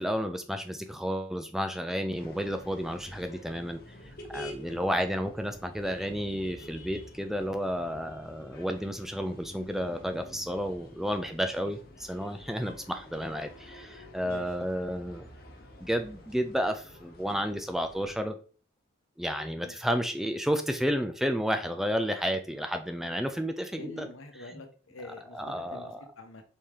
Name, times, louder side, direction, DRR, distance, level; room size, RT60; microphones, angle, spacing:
voice 1, 0.0-3.8 4.3-15.3 15.8-18.4 19.2-24.1 25.3-26.0, equal, ahead, 6 dB, 0.3 m, -31 dB
sound 1, 2.1-18.2, left 1 dB, 50° left, 0.9 m, -49 dB
voice 2, 14.2-14.7 19.5-19.8 23.8-26.4, left 2 dB, 90° left, 6 dB, 0.9 m, -47 dB
4.2 x 3.3 x 3.6 m, 0.39 s
head